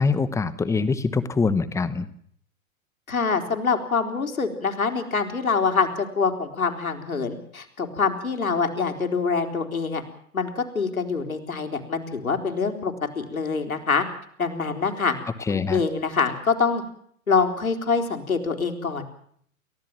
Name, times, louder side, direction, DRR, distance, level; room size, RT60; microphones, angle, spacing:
voice 1, 0.0-2.1 15.5-15.8, left 4 dB, 5° left, 14 dB, 1.1 m, -24 dB
voice 2, 3.1-5.9 6.2-10.0 10.3-14.0 14.4-15.1 15.5-16.8 17.3-19.0, left 5 dB, 75° left, 4 dB, 4.0 m, -25 dB
29.0 x 15.0 x 7.6 m, 0.65 s
figure-of-eight pair, 105°, 43 cm